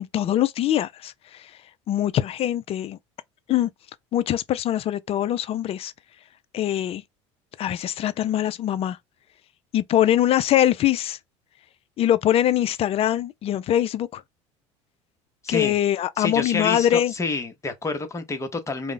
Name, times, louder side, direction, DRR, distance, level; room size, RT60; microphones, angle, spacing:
voice 1, 0.0-1.6 1.9-3.0 3.5-3.7 4.1-5.9 6.5-7.0 7.6-9.0 9.7-11.2 12.0-14.2 15.5-17.1, left 11 dB, 40° left, 0.3 m, -23 dB
voice 2, 16.2-18.9, left 3 dB, 20° left, 0.8 m, -28 dB
2.4 x 2.0 x 3.7 m
supercardioid pair, 90°, 15 cm